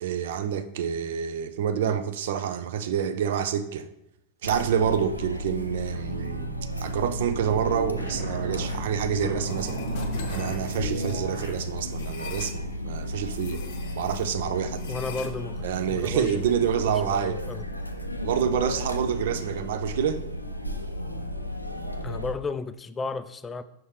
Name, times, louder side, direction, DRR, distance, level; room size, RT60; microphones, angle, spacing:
voice 1, 0.0-3.9 4.4-9.8 10.3-13.6 14.0-14.8 15.6-17.4 18.2-20.2, right 8 dB, 55° right, 0.5 m, -27 dB
Chatter, 4.4-22.3, left 1 dB, 90° left, 0.5 m, -34 dB
sound 1, 5.9-11.6, right 2 dB, 85° right, 1.3 m, -35 dB
sound 2, 9.5-12.6 13.3-14.2 14.7-16.7, left 7 dB, 50° left, 0.7 m, -44 dB
voice 2, 14.9-16.5 17.1-17.7 22.0-23.6, left 3 dB, 15° left, 0.3 m, -34 dB
5.9 x 5.4 x 3.3 m
figure-of-eight pair, 90°, 0 cm